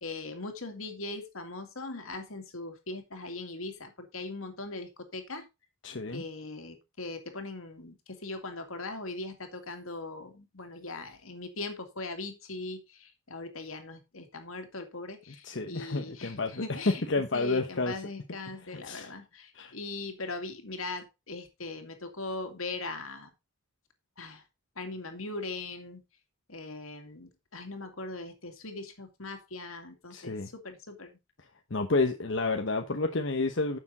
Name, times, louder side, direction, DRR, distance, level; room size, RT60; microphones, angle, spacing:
voice 1, 0.0-5.5 6.1-17.0 17.3-23.3 24.2-24.4 24.8-26.0 26.5-31.1, left 2 dB, 85° left, 2.4 m, -40 dB
voice 2, 5.8-6.2 15.4-16.8 17.1-17.9 18.8-19.1 19.5-19.7 30.1-30.5 31.7-33.8, left 3 dB, 60° left, 1.0 m, -30 dB
9.8 x 7.1 x 4.1 m
head